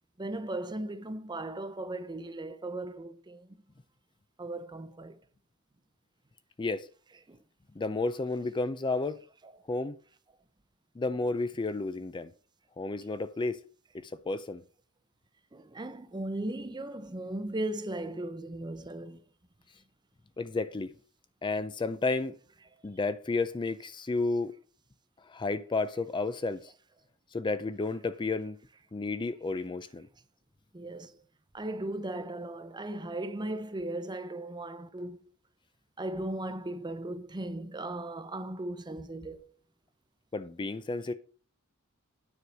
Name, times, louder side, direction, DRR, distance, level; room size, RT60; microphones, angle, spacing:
voice 1, 0.2-3.5 4.4-5.2 7.3-7.4 9.0-9.1 9.4-9.5 15.5-19.2 30.7-31.2 31.5-35.2 36.0-39.5, right 1 dB, 20° right, 0.7 m, -37 dB
voice 2, 7.8-9.2 9.7-10.0 11.0-12.3 12.8-13.6 14.0-14.6 20.4-20.9 21.4-22.4 22.8-24.5 25.3-26.7 27.3-28.6 28.9-30.1 40.3-41.1, left 3 dB, 20° left, 0.4 m, -32 dB
9.6 x 4.7 x 6.1 m
head